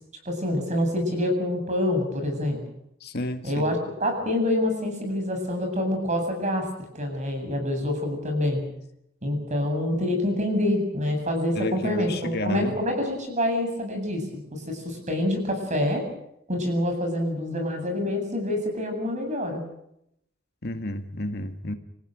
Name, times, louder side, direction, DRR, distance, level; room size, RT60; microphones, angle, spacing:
voice 1, 0.2-2.6 3.4-6.7 6.9-8.7 9.2-16.1 16.5-19.6, left 1 dB, 35° right, 4 dB, 7.9 m, -26 dB
voice 2, 3.0-3.7 11.6-12.8 20.6-21.7, left 1 dB, 50° left, 7 dB, 1.9 m, -31 dB
28.0 x 15.5 x 9.3 m, 0.78 s
head